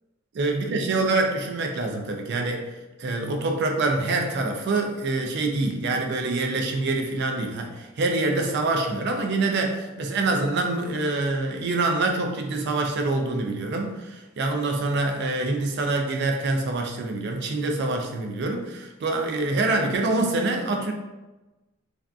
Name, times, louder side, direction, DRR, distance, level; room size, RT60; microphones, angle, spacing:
voice 1, 0.4-2.7 3.0-20.9, right 2 dB, 55° right, 3 dB, 0.4 m, -25 dB
2.5 x 2.4 x 2.2 m, 1.1 s
head